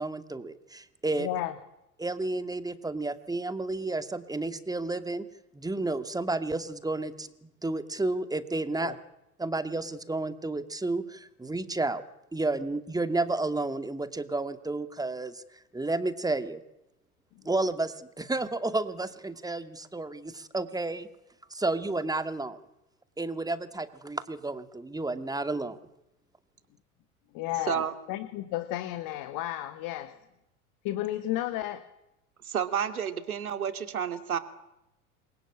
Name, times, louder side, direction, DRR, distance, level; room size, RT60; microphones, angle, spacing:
voice 1, 0.0-1.3 2.0-5.3 5.5-9.0 9.4-12.0 12.3-16.6 17.4-21.1 21.5-22.6 23.2-25.8, right 2 dB, 10° right, 11 dB, 2.3 m, -31 dB
voice 2, 1.2-1.5 8.7-8.9 27.3-30.2 30.8-31.9, left 14 dB, 50° left, 11 dB, 2.1 m, -33 dB
voice 3, 32.4-34.4, right 8 dB, 80° right, 10 dB, 2.7 m, -30 dB
28.5 x 23.0 x 8.9 m, 0.88 s
figure-of-eight pair, 80°, 43 cm